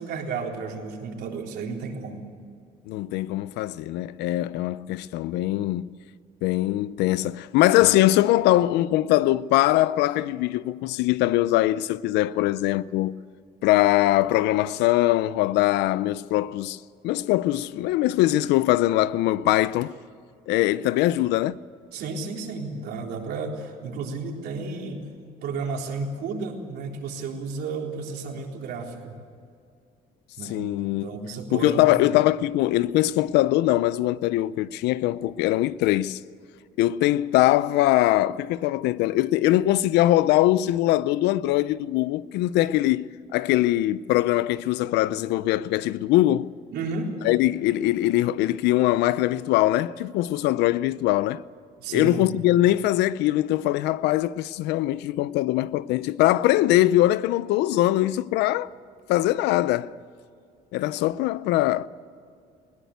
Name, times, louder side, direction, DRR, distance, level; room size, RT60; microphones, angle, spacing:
voice 1, 0.0-2.2 21.9-25.0 25.4-29.2 30.4-30.7 31.0-32.1 46.7-47.1 51.8-52.4, right 4 dB, 75° right, 3.8 m, -32 dB
voice 2, 2.9-6.0 6.4-13.2 13.6-20.0 20.5-21.6 30.5-31.1 31.5-36.2 36.8-46.5 47.2-51.4 51.9-58.7 59.1-59.9 60.7-61.9, left 15 dB, 90° left, 0.6 m, -22 dB
21.0 x 17.5 x 8.2 m
cardioid pair, 110°, 17 cm